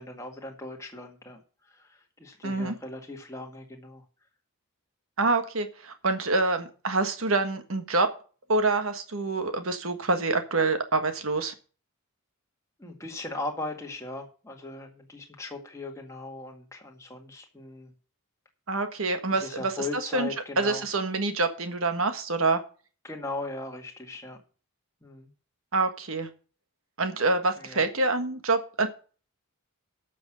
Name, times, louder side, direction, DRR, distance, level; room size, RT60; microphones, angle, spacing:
voice 1, 0.0-4.0 12.8-17.9 19.3-20.8 23.0-24.4 25.0-25.3 27.6-27.8, left 2 dB, 15° left, 1 dB, 1.9 m, -38 dB
voice 2, 2.4-2.8 5.2-8.1 8.5-11.5 18.7-19.7 20.1-20.3 20.6-22.6 25.7-26.3 27.0-28.9, right 3 dB, 65° right, 8 dB, 1.5 m, -26 dB
12.0 x 6.4 x 6.2 m, 0.38 s
head